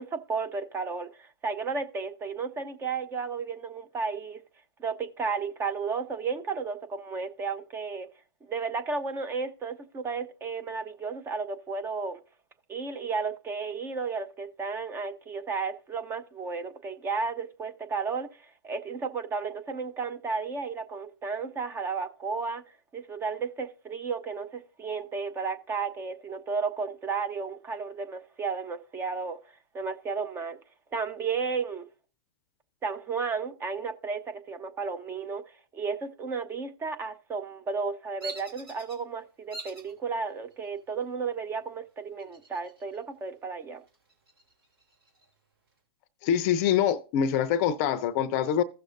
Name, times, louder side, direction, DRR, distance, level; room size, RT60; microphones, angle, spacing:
voice 1, 0.0-4.4 4.8-8.1 8.5-12.2 12.7-22.6 22.9-29.4 29.7-30.6 30.9-31.9 32.8-35.4 35.7-43.8, right 5 dB, 20° right, 0.8 m, -33 dB
Bird vocalization bird call bird song, 38.2-39.0 39.5-39.9 40.5-41.0 42.2-43.0 43.3-43.4 43.9-45.3, right 3 dB, 70° right, 2.8 m, -43 dB
voice 2, 46.2-48.6, left 9 dB, 40° left, 0.6 m, -25 dB
15.5 x 6.4 x 2.5 m
hypercardioid pair, 115°, 13 cm